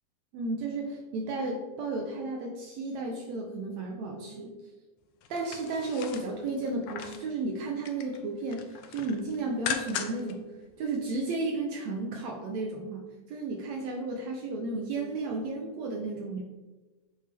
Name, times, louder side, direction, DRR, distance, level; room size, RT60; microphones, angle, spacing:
voice 1, 0.3-4.5 5.3-10.5 10.8-16.4, right 3 dB, 75° right, 1 dB, 1.7 m, -33 dB
sound 1, 5.2-7.3 7.7-8.2 8.5-10.3 10.7-10.8, left 8 dB, 90° left, 1.5 m, -38 dB
8.6 x 4.3 x 3.4 m, 1.2 s
omnidirectional pair, 3.6 m